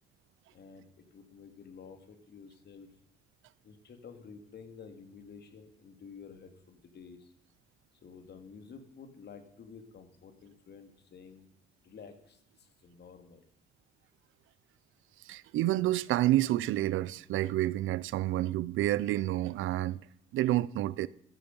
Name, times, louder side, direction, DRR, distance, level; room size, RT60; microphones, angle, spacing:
voice 1, 0.5-2.9 3.6-7.3 8.0-11.5 11.8-13.4, left 6 dB, 55° left, 2.4 m, -51 dB
voice 2, 15.3-20.0 20.3-21.1, right 15 dB, 85° right, 0.6 m, -29 dB
13.5 x 10.5 x 5.4 m
cardioid pair, 90°, 20 cm